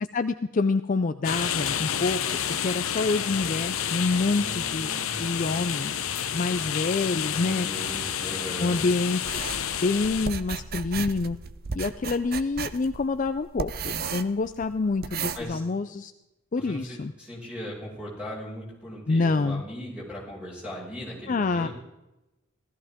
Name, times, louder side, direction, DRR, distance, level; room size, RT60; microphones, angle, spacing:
voice 1, 0.1-2.2 2.6-6.0 6.3-7.7 8.6-9.4 9.8-11.4 11.7-16.1 16.5-17.1 19.1-19.6 21.3-21.7, left 3 dB, 40° left, 10 dB, 0.4 m, -27 dB
sound 1, 1.2-10.3, left 9 dB, 80° left, 0.8 m, -30 dB
voice 2, 4.2-6.1 7.3-8.8 15.3-15.6 16.6-21.7, equal, 5° right, -5 dB, 5.9 m, -38 dB
sound 2, 9.2-15.4, right 5 dB, 45° right, 0.6 m, -35 dB
16.0 x 14.0 x 3.6 m, 0.94 s
head